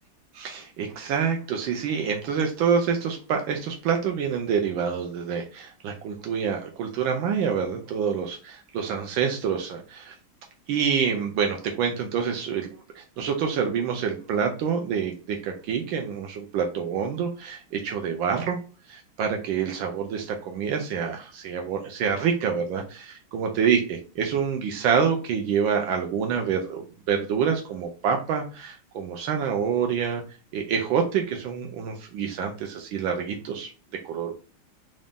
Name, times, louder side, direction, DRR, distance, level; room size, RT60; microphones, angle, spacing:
voice 1, 0.3-10.1 10.7-12.7 12.9-18.6 18.9-30.2 30.5-33.7 34.0-34.4, right 7 dB, 75° right, 3 dB, 1.3 m, -27 dB
4.0 x 2.5 x 3.5 m, 0.36 s
omnidirectional pair, 2.3 m